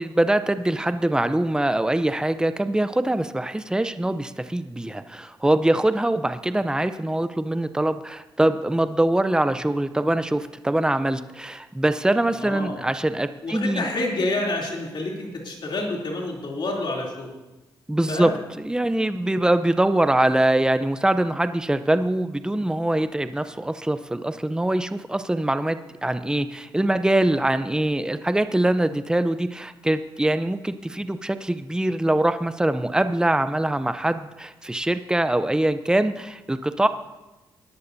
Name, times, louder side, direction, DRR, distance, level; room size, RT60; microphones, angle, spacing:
voice 1, 0.0-13.9 17.9-18.3 18.6-36.9, right 1 dB, 10° right, 11 dB, 0.6 m, -23 dB
voice 2, 12.4-12.9 13.4-17.3 18.1-18.4, left 2 dB, 60° left, -1 dB, 3.1 m, -28 dB
19.5 x 11.0 x 2.7 m, 1.0 s
cardioid pair, 65°, 9 cm